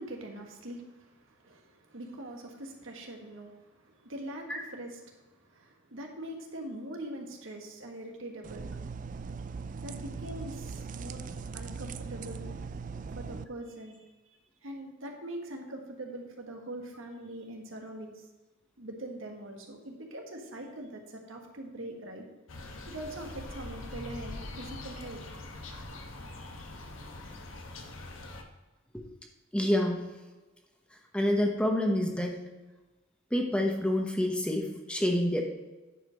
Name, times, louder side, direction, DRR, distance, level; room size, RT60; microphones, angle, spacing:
voice 1, 0.0-8.8 9.8-12.5 13.1-14.4 14.6-18.3 18.8-22.3 22.9-25.2, right 1 dB, 85° right, 2 dB, 1.6 m, -43 dB
sound 1, 8.4-13.4, right 5 dB, 40° right, 0.4 m, -40 dB
sound 2, 22.5-28.4, left 2 dB, 85° left, 1.1 m, -43 dB
voice 2, 29.5-30.0 31.1-32.4 33.3-35.4, left 1 dB, 5° left, 2 dB, 1.0 m, -27 dB
9.8 x 5.1 x 5.2 m, 1.2 s
head